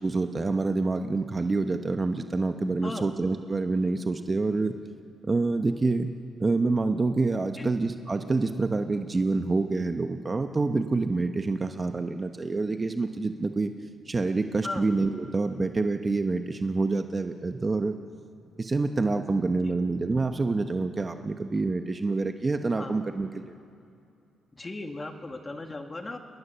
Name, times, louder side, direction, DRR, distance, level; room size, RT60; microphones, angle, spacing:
voice 1, 0.0-4.7 5.2-6.1 6.4-13.7 14.1-17.9 18.6-23.5, right 3 dB, 25° right, 7 dB, 1.1 m, -27 dB
voice 2, 2.8-3.1 7.6-7.7 14.6-14.9 19.6-19.7 22.8-22.9 24.5-26.2, left 2 dB, 25° left, 5 dB, 2.2 m, -37 dB
28.0 x 21.5 x 7.0 m, 2.5 s
cardioid pair, 90°, 0 cm